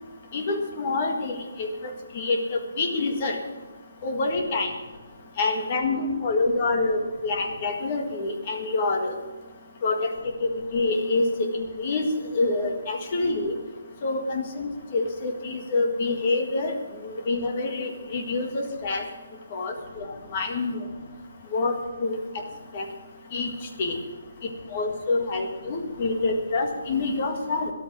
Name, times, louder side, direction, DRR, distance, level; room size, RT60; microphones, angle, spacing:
voice 1, 0.3-3.4 4.0-4.7 5.4-9.1 9.8-10.1 10.4-13.5 14.0-16.7 17.0-19.0 19.5-20.1 20.3-20.8 21.5-22.2 22.7-22.9 23.3-23.5 23.8-24.0 24.7-27.7, left 3 dB, 20° left, 4 dB, 1.7 m, -26 dB
13.5 x 12.0 x 6.2 m, 1.3 s
hypercardioid pair, 180°, 0 cm